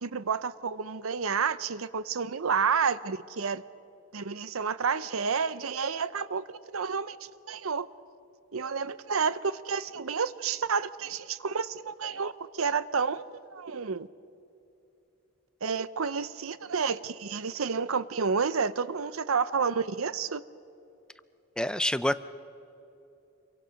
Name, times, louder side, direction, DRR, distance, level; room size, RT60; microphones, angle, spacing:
voice 1, 0.0-3.6 4.1-6.4 6.7-7.2 7.5-7.9 8.5-13.2 13.5-14.1 15.6-20.4, right 5 dB, 80° right, 15 dB, 0.7 m, -30 dB
voice 2, 21.6-22.3, left 1 dB, 5° left, 13 dB, 0.4 m, -28 dB
27.0 x 23.5 x 5.2 m, 2.8 s
head